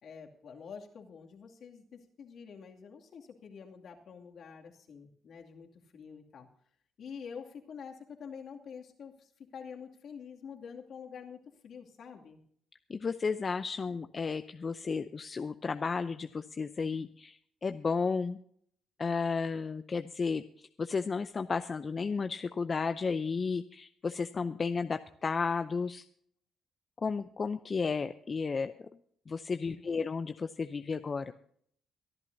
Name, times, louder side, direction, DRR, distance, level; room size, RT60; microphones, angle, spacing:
voice 1, 0.0-6.5 7.0-12.4 29.6-30.0, left 6 dB, 65° left, 2 dB, 2.4 m, -47 dB
voice 2, 12.9-18.4 19.0-26.0 27.0-28.7 29.3-31.3, left 5 dB, 35° left, 9 dB, 0.6 m, -33 dB
24.0 x 11.0 x 2.7 m, 0.63 s
cardioid pair, 90°, 0 cm